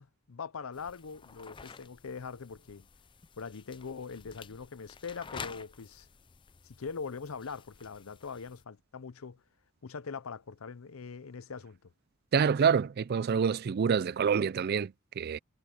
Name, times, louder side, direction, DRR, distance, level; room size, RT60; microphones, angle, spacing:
voice 1, 0.0-2.9 3.4-6.1 6.6-9.4 9.8-11.8, left 5 dB, 75° left, 0.6 m, -42 dB
Page Scrolling, 0.7-8.6, left 5 dB, 25° left, 0.4 m, -50 dB
voice 2, 12.3-15.4, right 6 dB, 45° right, 0.4 m, -27 dB
head